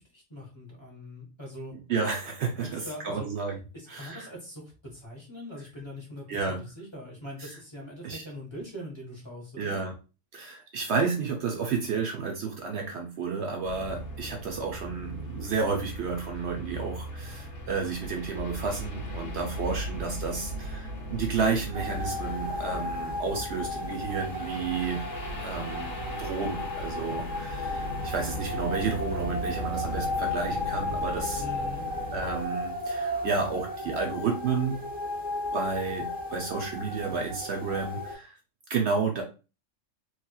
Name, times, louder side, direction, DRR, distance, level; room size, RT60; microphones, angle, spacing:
voice 1, 0.0-1.7 2.6-3.3 3.7-9.8 31.4-31.8, left 1 dB, 25° left, -3 dB, 1.0 m, -42 dB
voice 2, 1.9-3.6 3.9-4.3 6.3-6.6 7.4-7.5 8.0-8.2 9.6-9.9 10.3-25.0 25.4-31.4 32.1-34.8 35.5-38.4 38.7-39.2, right 5 dB, 65° right, 2 dB, 0.8 m, -31 dB
sound 1, 13.6-32.5, equal, 65° left, 1.1 m, -38 dB
sound 2, 21.7-38.1, left 1 dB, 10° right, 0.6 m, -34 dB
3.2 x 2.9 x 2.3 m, 0.32 s
omnidirectional pair, 1.3 m